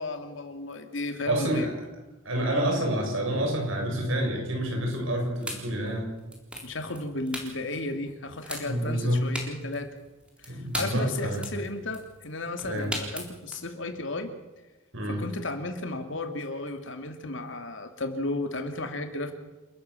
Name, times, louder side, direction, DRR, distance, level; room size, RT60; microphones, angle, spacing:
voice 1, 0.0-1.7 6.6-9.9 10.4-14.3 15.1-19.3, left 2 dB, 70° left, 6 dB, 2.7 m, -34 dB
voice 2, 1.3-1.7 2.3-6.1 8.7-9.3 10.5-11.4 12.6-12.9 14.9-15.2, right 1 dB, 75° right, 1 dB, 7.1 m, -28 dB
sound 1, 4.8-13.6, equal, 5° right, 3.7 m, -39 dB
28.5 x 13.5 x 7.2 m, 1.1 s
head